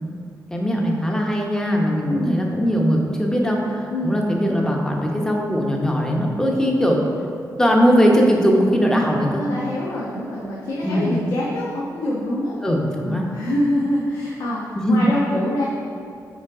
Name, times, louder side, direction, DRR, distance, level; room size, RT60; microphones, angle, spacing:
voice 1, 0.5-7.0 7.6-9.4 10.8-11.2 12.6-13.3 14.7-15.1, equal, 10° left, -1 dB, 1.0 m, -20 dB
voice 2, 2.0-2.4 3.9-4.2 9.3-12.5 13.0-15.6, left 1 dB, 85° left, -6 dB, 1.2 m, -25 dB
7.2 x 5.3 x 4.9 m, 2.4 s
wide cardioid pair, 115°, 7 cm